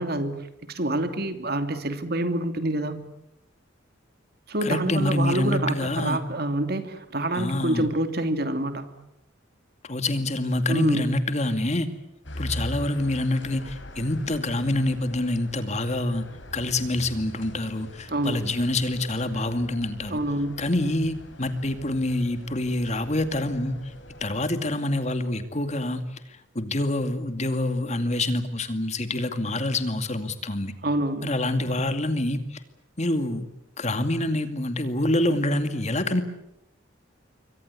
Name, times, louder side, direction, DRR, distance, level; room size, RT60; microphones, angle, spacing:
voice 1, 0.0-3.0 4.5-8.9 10.7-11.0 18.1-18.4 20.1-20.6 30.8-31.3, right 1 dB, 55° right, 8 dB, 2.7 m, -27 dB
voice 2, 4.6-6.2 7.3-7.9 9.8-11.9 12.4-16.2 16.5-20.2 20.6-23.8 24.2-26.0 26.5-30.7 31.2-32.6 33.0-33.4 33.8-36.2, left 1 dB, 35° left, 9 dB, 2.4 m, -26 dB
sound 1, 12.2-24.4, equal, 70° left, 5.1 m, -42 dB
27.0 x 24.0 x 8.5 m, 0.82 s
head